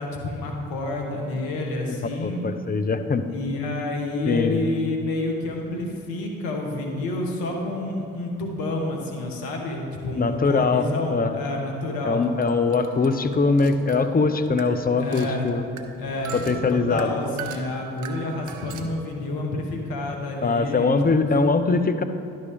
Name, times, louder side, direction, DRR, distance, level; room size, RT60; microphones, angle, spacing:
voice 1, 0.0-2.4 3.3-12.2 15.0-15.6 16.0-21.3, left 2 dB, 70° left, 2 dB, 1.3 m, -29 dB
voice 2, 2.2-3.2 4.3-4.6 10.2-11.3 12.0-15.7 16.3-17.1 20.4-22.0, left 4 dB, 25° left, 9 dB, 0.6 m, -22 dB
sound 1, 11.4-19.0, right 7 dB, 55° right, 0.7 m, -42 dB
11.0 x 5.3 x 3.5 m, 2.7 s
hypercardioid pair, 45°, 37 cm